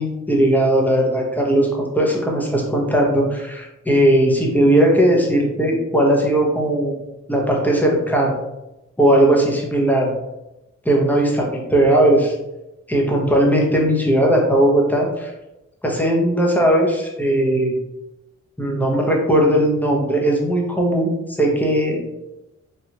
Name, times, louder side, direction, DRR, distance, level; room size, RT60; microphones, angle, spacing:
voice 1, 0.0-7.0 7.3-8.3 9.0-10.1 10.8-12.3 12.9-15.3 15.8-17.7 18.6-21.1 21.4-22.1, right 1 dB, 5° left, -1 dB, 0.9 m, -18 dB
3.2 x 2.5 x 2.9 m, 0.95 s
cardioid pair, 50°, 30 cm